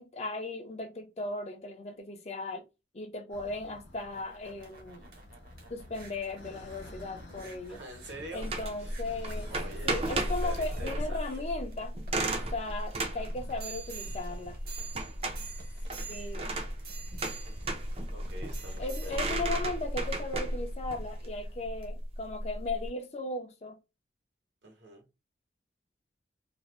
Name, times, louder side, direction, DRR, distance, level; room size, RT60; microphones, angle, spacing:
voice 1, 0.0-2.6 2.9-5.1 5.7-7.8 8.3-9.5 9.8-11.9 12.5-14.6 16.1-16.6 18.8-23.8, left 2 dB, 35° left, 0.4 m, -37 dB
sound 1, 3.3-11.2, left 1 dB, 75° left, 0.7 m, -50 dB
sound 2, 3.6-21.3 21.8-21.9, right 4 dB, 50° right, 0.8 m, -49 dB
voice 2, 7.7-8.5 8.8-8.9 9.5-11.4 12.2-12.5 18.1-19.4 24.6-25.0, right 1 dB, 75° right, 1.0 m, -46 dB
sound 3, 8.4-22.9, right 1 dB, 30° right, 0.4 m, -34 dB
2.5 x 2.0 x 3.0 m
head